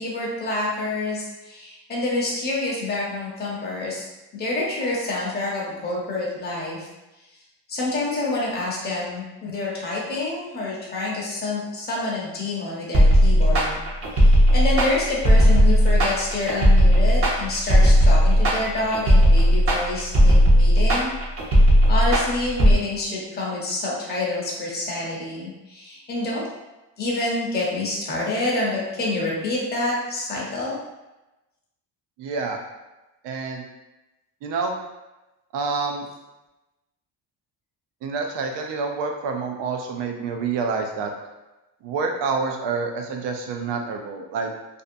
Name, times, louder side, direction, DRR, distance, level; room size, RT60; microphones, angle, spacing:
voice 1, 0.0-4.1 4.3-6.9 7.7-13.8 14.1-21.1 21.4-21.5 21.9-26.4 27.0-30.8, left 2 dB, 25° left, -5 dB, 0.7 m, -27 dB
sound 1, 12.9-22.8, equal, 35° right, 0.6 m, -16 dB
voice 2, 32.2-32.6 33.2-33.6 34.4-34.8 35.5-36.1 38.0-41.1 41.8-44.5, right 4 dB, 75° right, 3 dB, 0.6 m, -27 dB
2.6 x 2.2 x 2.6 m, 1.0 s
cardioid pair, 135°, 42 cm